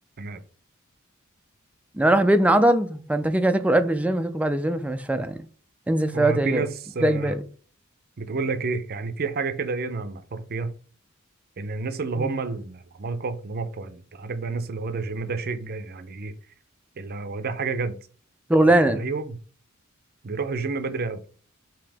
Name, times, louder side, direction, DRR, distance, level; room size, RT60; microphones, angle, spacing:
voice 1, 1.9-5.4 5.9-6.6 7.0-7.4 12.2-12.3 18.5-19.0, right 1 dB, 5° right, 0.3 m, -21 dB
voice 2, 6.1-7.3 8.2-10.7 11.6-16.3 17.0-18.0 18.9-19.4 20.2-21.2, right 4 dB, 50° right, 0.6 m, -30 dB
5.2 x 2.8 x 3.4 m
head